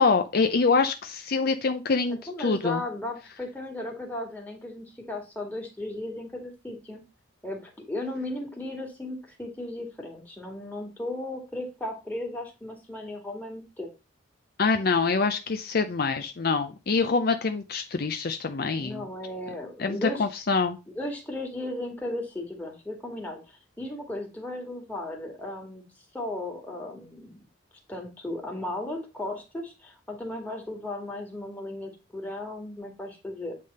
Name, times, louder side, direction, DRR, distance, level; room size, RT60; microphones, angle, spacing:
voice 1, 0.0-2.8 14.6-19.0 19.8-20.8, left 4 dB, 50° left, 8 dB, 0.6 m, -25 dB
voice 2, 2.1-7.0 7.4-13.9 18.5-20.2 21.0-25.8 26.1-27.3 27.9-33.5, left 1 dB, 10° left, 1 dB, 2.0 m, -36 dB
8.4 x 3.4 x 5.4 m, 0.28 s
head